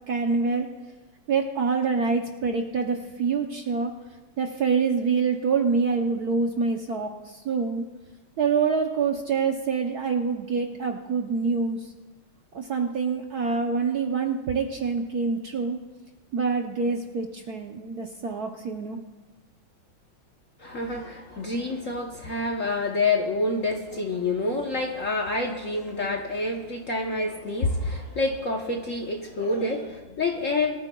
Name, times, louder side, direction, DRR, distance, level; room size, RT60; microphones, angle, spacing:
voice 1, 0.1-0.7 1.3-3.9 4.4-7.8 8.4-11.9 12.5-15.8 16.3-19.0, right 5 dB, 65° right, 3 dB, 1.0 m, -26 dB
voice 2, 20.6-30.8, left 2 dB, 50° left, 1 dB, 1.0 m, -27 dB
23.0 x 13.5 x 2.3 m, 1.2 s
omnidirectional pair, 2.4 m